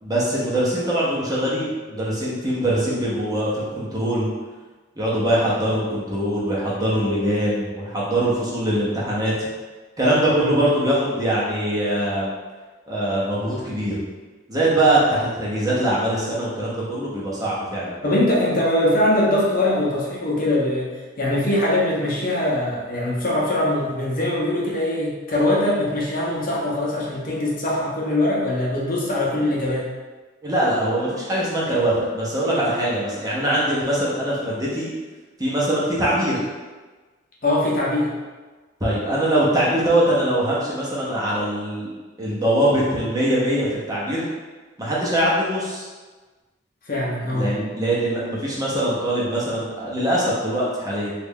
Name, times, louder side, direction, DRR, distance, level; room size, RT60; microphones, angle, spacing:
voice 1, 0.0-4.3 5.0-9.3 10.0-12.3 12.9-14.0 14.5-18.0 30.4-34.9 35.4-36.4 38.8-41.9 42.2-44.2 44.8-45.8 47.3-51.1, right 1 dB, 20° right, -6 dB, 0.8 m, -22 dB
voice 2, 18.0-29.9 37.4-38.1 46.8-47.5, left 1 dB, 50° left, -5 dB, 0.7 m, -22 dB
3.2 x 2.4 x 3.5 m, 1.3 s
head